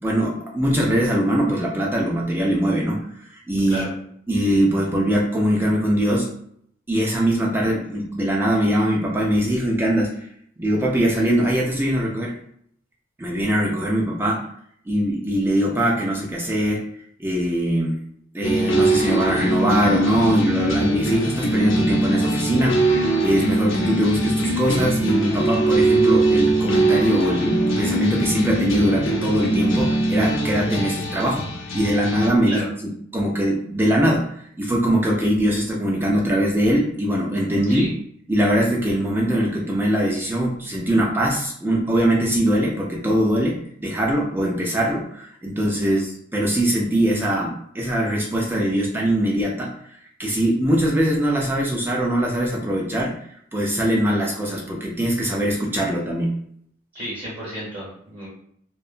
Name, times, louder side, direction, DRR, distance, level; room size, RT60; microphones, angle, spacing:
voice 1, 0.0-3.1 3.5-3.9 4.3-6.3 6.9-10.2 10.6-12.4 13.2-14.5 14.9-16.9 17.2-17.9 18.3-31.5 31.7-32.6 33.1-34.3 34.6-37.9 38.3-49.7 50.2-53.2 53.5-56.4, equal, 10° right, -2 dB, 0.3 m, -22 dB
sound 1, 18.4-32.3, right 2 dB, 75° left, 0.6 m, -21 dB
voice 2, 56.9-58.3, right 1 dB, 30° right, -8 dB, 0.9 m, -32 dB
2.7 x 2.2 x 2.4 m, 0.67 s
head